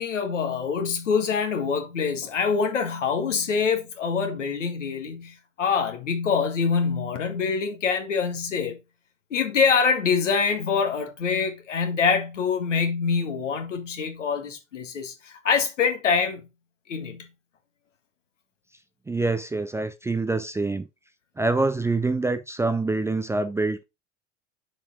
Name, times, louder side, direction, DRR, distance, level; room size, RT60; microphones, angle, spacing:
voice 1, 0.0-8.8 9.3-16.5 16.9-17.3, left 5 dB, 75° left, 1.8 m, -25 dB
voice 2, 19.1-20.9 21.4-23.8, right 3 dB, 5° right, 0.5 m, -25 dB
7.5 x 4.6 x 3.5 m
figure-of-eight pair, 80°, 37 cm